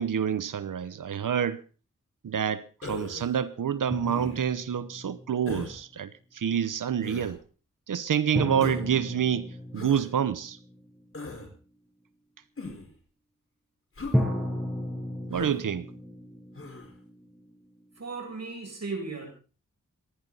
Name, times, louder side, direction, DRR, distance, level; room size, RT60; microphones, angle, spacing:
voice 1, 0.0-1.6 2.2-7.4 7.9-10.6 15.3-15.9, right 8 dB, 75° right, 0.9 m, -28 dB
Human voice, 2.8-3.3 4.0-4.5 5.5-5.8 7.0-7.3 8.6-8.9 9.8-10.1 11.1-11.5 12.6-12.9 14.0-14.2 15.3-15.6 16.6-16.9, left 2 dB, 45° left, 4.8 m, -38 dB
sound 1, 3.9-5.7 8.4-11.2 14.1-18.0, left 1 dB, 5° left, 7.7 m, -34 dB
voice 2, 18.0-19.3, right 3 dB, 55° right, 7.6 m, -36 dB
27.0 x 10.5 x 4.0 m
cardioid pair, 55°, 32 cm